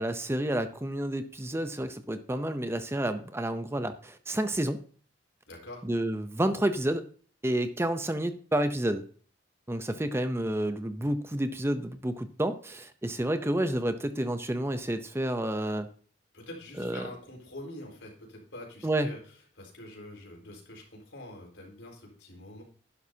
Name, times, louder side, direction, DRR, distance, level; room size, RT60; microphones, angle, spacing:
voice 1, 0.0-4.8 5.9-7.0 7.4-9.0 9.7-15.9 16.8-17.0 18.8-19.1, right 1 dB, 15° right, 10 dB, 0.6 m, -30 dB
voice 2, 5.5-5.8 16.3-22.6, left 1 dB, 80° left, 0 dB, 4.6 m, -45 dB
11.5 x 11.0 x 2.8 m, 0.43 s
head